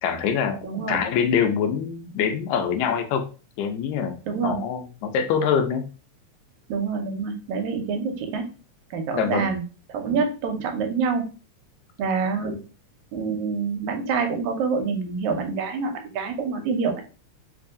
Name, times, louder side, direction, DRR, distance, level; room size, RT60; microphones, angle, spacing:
voice 1, 0.0-0.6 0.9-3.3 3.6-5.9 9.1-9.5 12.4-12.6, left 7 dB, 80° left, 6 dB, 1.9 m, -24 dB
voice 2, 0.6-1.0 4.3-4.6 6.7-8.5 8.9-9.6 9.9-11.3 12.0-12.6 13.1-17.0, right 5 dB, 85° right, 5 dB, 2.1 m, -26 dB
4.7 x 2.7 x 2.5 m, 0.34 s
omnidirectional pair, 3.3 m